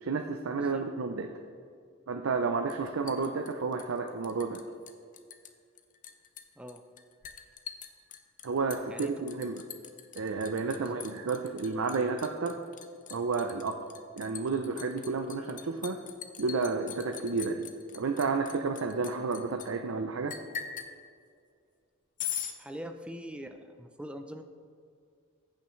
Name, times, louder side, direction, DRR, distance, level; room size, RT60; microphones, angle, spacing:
voice 1, 0.0-1.3 2.1-4.6 8.4-9.6 10.2-12.6 13.1-13.8 14.2-16.0 16.4-17.7 17.9-20.3, right 4 dB, 90° right, 5 dB, 0.5 m, -31 dB
Liquid, 2.7-4.6 4.9-5.5 5.8-19.7 20.3-20.9 22.2-22.5, left 8 dB, 40° left, 0.6 m, -42 dB
voice 2, 22.6-24.5, equal, 5° right, 6 dB, 0.4 m, -43 dB
15.0 x 5.8 x 3.1 m, 2.2 s
head